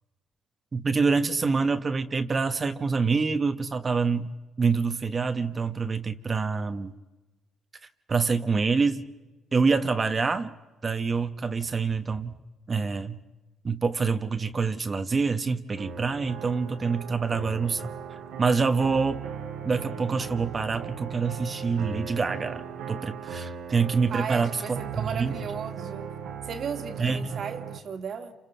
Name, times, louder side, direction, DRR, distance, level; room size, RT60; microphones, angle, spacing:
voice 1, 0.7-4.3 4.6-6.9 8.1-9.0 9.5-10.5 10.8-12.4 12.7-13.2 13.6-17.9 18.4-19.2 19.6-22.6 22.9-25.4 27.0-27.4, right 4 dB, 35° right, 1.1 m, -26 dB
sound 1, 15.8-27.8, right 7 dB, 85° right, 2.2 m, -38 dB
voice 2, 24.1-26.1 26.4-28.3, right 6 dB, 60° right, 2.2 m, -35 dB
28.5 x 26.5 x 5.6 m
cardioid pair, 80°, 0 cm